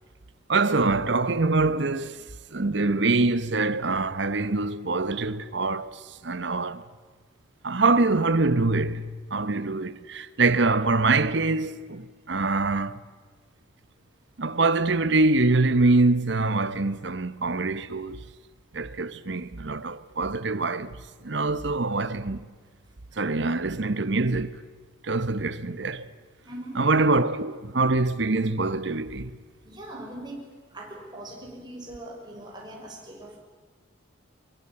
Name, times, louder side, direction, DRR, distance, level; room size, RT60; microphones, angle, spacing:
voice 1, 0.5-2.2 2.5-6.8 7.6-13.0 14.4-18.2 18.7-21.0 21.2-22.4 23.2-24.7 25.0-26.1 26.7-29.3, right 3 dB, 60° right, 0.9 m, -24 dB
voice 2, 26.5-26.9 29.7-30.4 30.7-33.4, right 1 dB, 20° right, 5.8 m, -41 dB
23.5 x 23.0 x 8.7 m
head